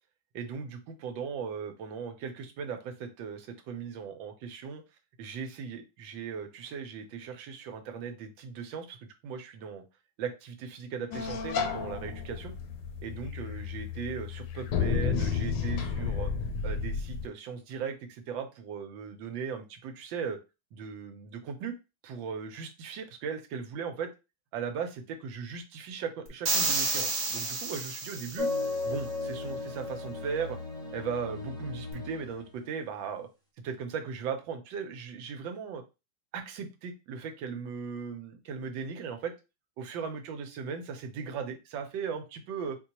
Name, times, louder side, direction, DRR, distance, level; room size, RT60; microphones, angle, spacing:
voice 1, 0.3-4.8 5.2-9.8 10.2-12.5 13.0-16.3 16.6-20.4 20.7-21.7 22.0-24.1 24.5-28.5 28.8-30.6 30.9-33.3 33.6-35.8 36.3-39.3 39.8-42.8, right 6 dB, 80° right, 6 dB, 1.4 m, -38 dB
sound 1, 11.1-17.3, left 6 dB, 75° left, 1.2 m, -32 dB
sound 2, 26.4-28.7, right 3 dB, 55° right, 0.7 m, -30 dB
sound 3, 28.4-32.5, left 3 dB, 5° left, 0.3 m, -35 dB
4.2 x 2.2 x 2.9 m, 0.27 s
omnidirectional pair, 2.1 m